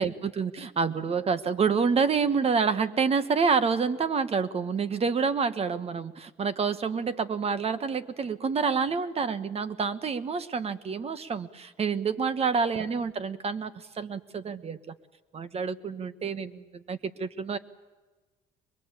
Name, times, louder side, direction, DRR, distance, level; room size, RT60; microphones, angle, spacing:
voice 1, 0.0-14.9 15.3-17.6, right 5 dB, 35° right, 13 dB, 1.3 m, -28 dB
23.0 x 22.0 x 8.4 m, 1.2 s
cardioid pair, 110°, 17 cm